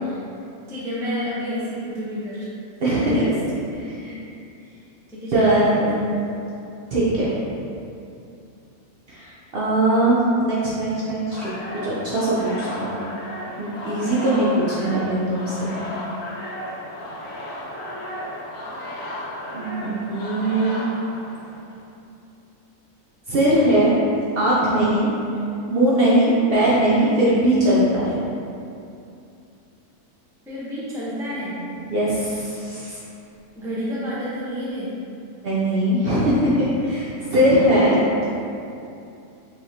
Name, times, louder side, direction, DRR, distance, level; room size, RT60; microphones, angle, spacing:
voice 1, 0.7-2.5 3.1-3.3 3.7-4.0 4.6-4.8 5.1-6.3 30.5-31.7 33.5-35.0 37.5-38.2, equal, 5° right, -9 dB, 0.5 m, -30 dB
voice 2, 2.8-3.2 5.3-6.0 6.9-7.4 9.1-11.5 11.8-13.0 13.6-15.8 19.5-20.8 23.3-23.9 24.4-25.1 25.7-28.2 31.9-33.0 35.4-38.0, right 1 dB, 60° right, -7 dB, 0.6 m, -20 dB
sound 1, 11.3-21.8, equal, 80° left, 1.2 m, -34 dB
4.7 x 3.1 x 2.7 m, 2.6 s
omnidirectional pair, 1.6 m